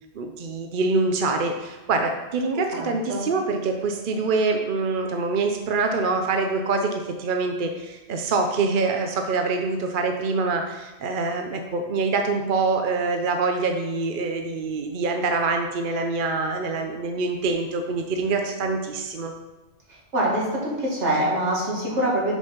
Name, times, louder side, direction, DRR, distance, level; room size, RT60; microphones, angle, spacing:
voice 1, 0.1-19.3, right 3 dB, 50° right, 4 dB, 0.7 m, -25 dB
voice 2, 2.5-3.2 20.1-22.4, right 1 dB, 70° right, -4 dB, 2.3 m, -25 dB
6.2 x 5.2 x 5.8 m, 1.1 s
omnidirectional pair, 1.2 m